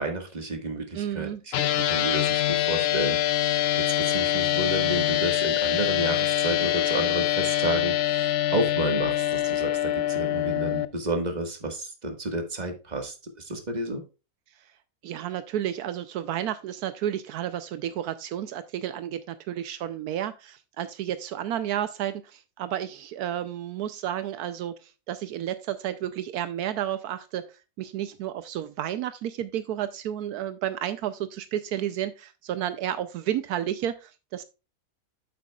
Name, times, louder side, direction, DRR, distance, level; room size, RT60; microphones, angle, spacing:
voice 1, 0.0-14.0, right 2 dB, 25° right, 5 dB, 1.7 m, -31 dB
voice 2, 0.9-1.4 15.0-27.4 27.8-34.4, right 11 dB, 80° right, 12 dB, 1.1 m, -31 dB
sound 1, 1.5-10.8, left 12 dB, 70° left, 0.6 m, -25 dB
8.4 x 7.8 x 2.3 m, 0.29 s
omnidirectional pair, 1.6 m